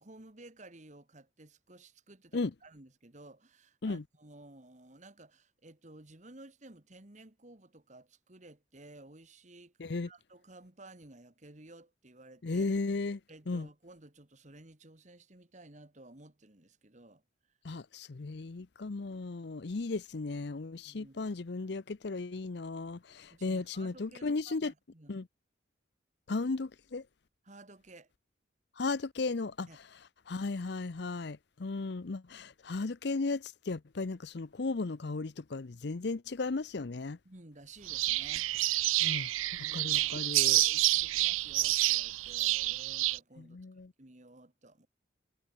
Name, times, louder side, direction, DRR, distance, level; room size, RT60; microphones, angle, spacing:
voice 1, 0.0-9.7 10.0-12.7 13.3-17.2 20.8-21.3 23.3-25.1 27.4-28.1 29.7-29.8 37.3-38.5 39.6-43.6 44.0-44.9, right 2 dB, 35° right, 1.8 m, -55 dB
voice 2, 12.4-13.2 13.5-13.7 17.6-24.7 25.1-25.3 26.3-27.0 28.8-29.7 30.3-37.2 39.0-39.3 39.7-40.6 43.4-43.9, left 3 dB, 55° left, 0.6 m, -35 dB
sound 1, 37.9-43.2, right 18 dB, 90° right, 0.4 m, -28 dB
head